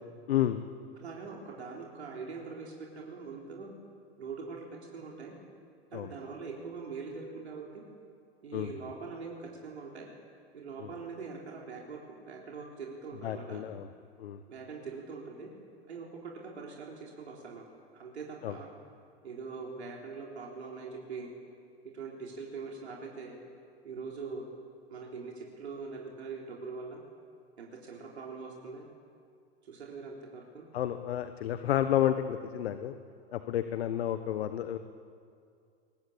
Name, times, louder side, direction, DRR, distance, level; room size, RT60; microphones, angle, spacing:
voice 1, 0.3-0.6 5.9-6.1 8.5-8.7 10.8-10.9 13.2-13.9 14.2-14.4 18.4-18.5 30.7-32.9 33.3-34.8, left 11 dB, 70° left, 10 dB, 1.2 m, -30 dB
voice 2, 1.0-3.7 4.2-4.7 4.9-5.3 5.9-7.8 8.4-10.1 10.5-13.6 14.5-15.5 15.9-17.6 17.9-18.7 19.2-21.3 21.9-23.4 23.8-24.5 24.9-27.0 27.6-28.8 29.6-30.7, right 4 dB, 80° right, -2 dB, 4.0 m, -42 dB
23.0 x 21.5 x 8.7 m, 2.4 s
hypercardioid pair, 100°, 32 cm